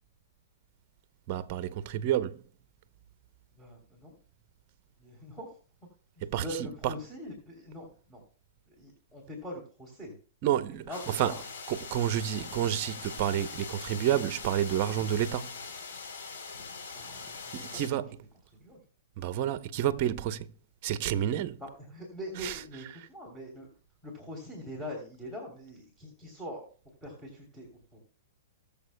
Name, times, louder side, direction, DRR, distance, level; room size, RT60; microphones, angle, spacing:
voice 1, 1.3-2.4 6.2-6.4 6.8-6.9 10.4-11.3 11.7-15.6 17.5-18.2 19.2-20.5 20.8-21.6 22.4-22.6, right 11 dB, 45° right, 0.7 m, -29 dB
voice 2, 3.5-4.2 5.0-5.6 6.1-8.2 8.7-10.1 10.7-11.4 16.9-18.0 18.5-18.8 21.6-23.7 24.0-26.7 27.0-28.0, equal, 5° left, 3.1 m, -43 dB
sound 1, 10.9-17.9, left 5 dB, 65° left, 3.4 m, -42 dB
21.0 x 7.0 x 2.2 m
hypercardioid pair, 130°, 0 cm